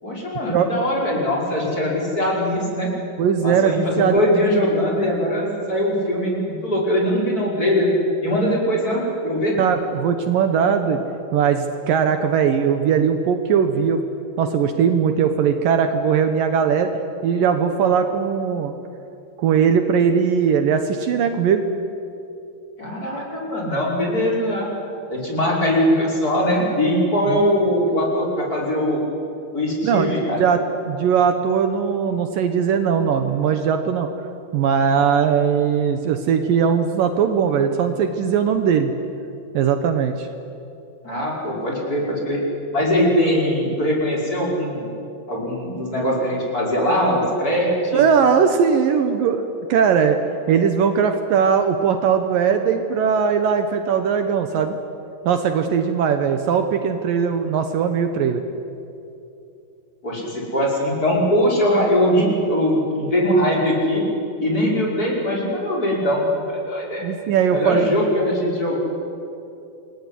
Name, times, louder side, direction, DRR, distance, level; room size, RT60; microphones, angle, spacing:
voice 1, 0.0-2.9 3.4-7.9 8.2-9.6 22.8-24.7 25.1-29.0 29.5-30.4 41.0-42.4 42.7-44.9 45.3-48.0 60.0-64.0 64.4-67.0 67.5-68.8, equal, 20° left, -3 dB, 5.8 m, -21 dB
voice 2, 3.2-4.2 9.6-11.0 11.3-14.0 14.4-16.9 17.2-18.7 19.4-21.6 27.3-27.4 29.8-30.1 30.4-30.6 30.9-34.1 34.5-38.9 39.5-40.3 47.9-50.2 50.5-54.8 55.2-58.4 67.0-67.9, right 7 dB, 70° right, 7 dB, 2.7 m, -19 dB
28.0 x 21.5 x 10.0 m, 2.7 s
omnidirectional pair, 4.4 m